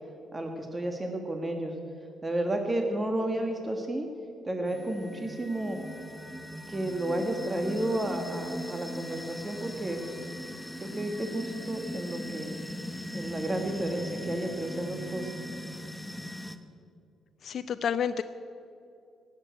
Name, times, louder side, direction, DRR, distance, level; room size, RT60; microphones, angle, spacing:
voice 1, 0.3-1.8 2.2-4.1 4.4-5.8 6.7-10.0 10.8-12.5 13.1-15.3, right 1 dB, 20° right, 4 dB, 1.4 m, -32 dB
sound 1, 4.7-16.6, equal, 5° left, 0.9 m, -39 dB
voice 2, 17.4-18.2, left 8 dB, 55° left, 11 dB, 0.5 m, -29 dB
17.0 x 7.5 x 9.1 m, 2.5 s
cardioid pair, 90°, 0 cm